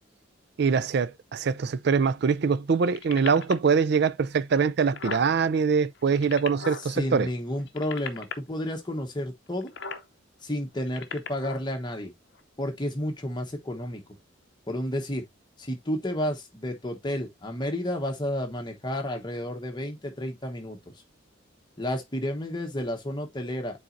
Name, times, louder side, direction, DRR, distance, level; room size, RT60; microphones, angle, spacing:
voice 1, 0.6-7.3, right 5 dB, 55° right, 0.4 m, -23 dB
sound 1, 2.8-3.7 4.4-4.5 4.7-5.3 6.0-6.9 7.6-8.3 9.6-10.0 10.8-11.6 12.4-12.5, left 5 dB, 55° left, 0.7 m, -37 dB
voice 2, 6.8-9.7 10.4-12.1 12.6-14.0 14.7-15.2 15.6-20.8 21.8-23.8, left 1 dB, 20° left, 1.1 m, -31 dB
8.8 x 4.1 x 2.6 m
head